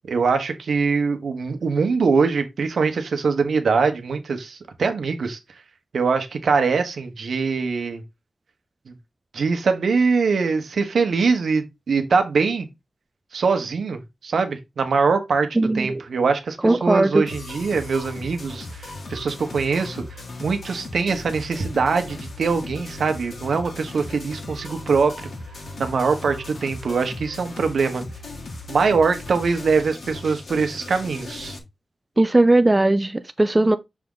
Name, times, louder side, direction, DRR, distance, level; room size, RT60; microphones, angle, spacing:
voice 1, 0.1-5.4 5.9-8.0 8.9-9.0 9.3-12.7 13.3-20.0 20.4-25.3 25.8-28.0 28.7-31.6, right 5 dB, 70° right, 1.1 m, -23 dB
voice 2, 15.6-16.0 16.6-17.2 32.2-33.8, right 2 dB, 15° right, 0.3 m, -18 dB
sound 1, 17.3-31.6, left 2 dB, 55° left, 1.7 m, -37 dB
6.8 x 3.6 x 3.8 m
wide cardioid pair, 170°, 0 cm